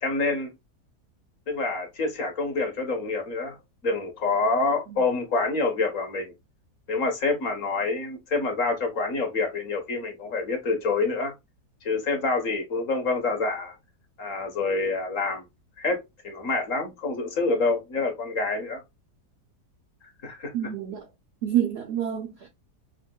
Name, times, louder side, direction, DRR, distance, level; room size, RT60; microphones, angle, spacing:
voice 1, 0.0-0.5 1.5-3.6 3.8-6.3 6.9-11.3 11.8-13.7 14.2-15.4 15.8-16.0 16.2-18.8 20.2-20.5, left 3 dB, 55° left, 1.3 m, -27 dB
voice 2, 20.5-21.1 21.4-22.5, right 10 dB, 75° right, 0.5 m, -28 dB
5.5 x 2.3 x 2.2 m
omnidirectional pair, 1.7 m